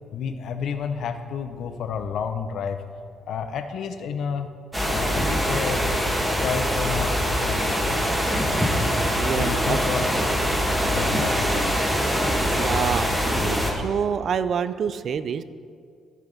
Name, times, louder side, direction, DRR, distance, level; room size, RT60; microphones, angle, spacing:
voice 1, 0.1-2.8 3.3-4.5 4.9-5.9 6.2-8.2 9.3-10.5 10.8-11.6, left 6 dB, 70° left, 8 dB, 0.7 m, -31 dB
sound 1, 4.7-13.7, equal, 10° right, 1.7 m, -23 dB
voice 2, 9.1-9.8 12.5-15.4, right 7 dB, 60° right, 14 dB, 0.4 m, -27 dB
14.5 x 5.9 x 4.0 m, 2.2 s
cardioid pair, 90°, 0 cm